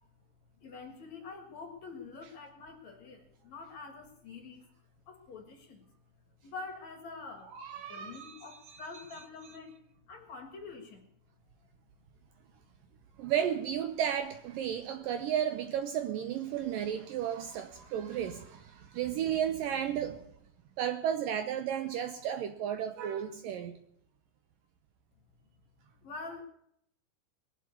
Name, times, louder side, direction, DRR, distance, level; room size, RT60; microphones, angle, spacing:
voice 1, 0.6-3.2 3.5-4.6 5.1-5.8 6.4-7.5 7.9-9.7 10.1-11.0 26.0-26.4, left 4 dB, 50° left, 2.6 m, -45 dB
voice 2, 7.5-8.8 13.2-20.2 20.8-23.8, right 9 dB, 75° right, 2.2 m, -33 dB
21.0 x 7.5 x 8.4 m
omnidirectional pair, 4.7 m